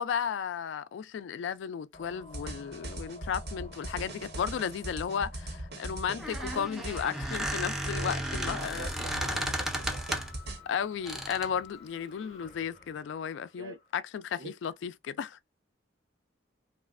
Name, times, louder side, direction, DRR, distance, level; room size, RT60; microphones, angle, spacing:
voice 1, 0.0-8.9 9.3-9.5 10.7-15.4, left 7 dB, 70° left, 0.3 m, -34 dB
sound 1, 1.9-13.9, left 3 dB, 30° left, 0.7 m, -52 dB
sound 2, 2.3-10.6, right 1 dB, 55° right, 0.7 m, -40 dB
Squeak, 6.1-10.4 11.1-11.6, equal, ahead, 0.4 m, -34 dB
voice 2, 6.5-6.8 8.0-8.3 8.6-10.1 13.6-13.8 14.4-14.5, right 2 dB, 90° right, 0.8 m, -45 dB
3.1 x 2.4 x 2.4 m
head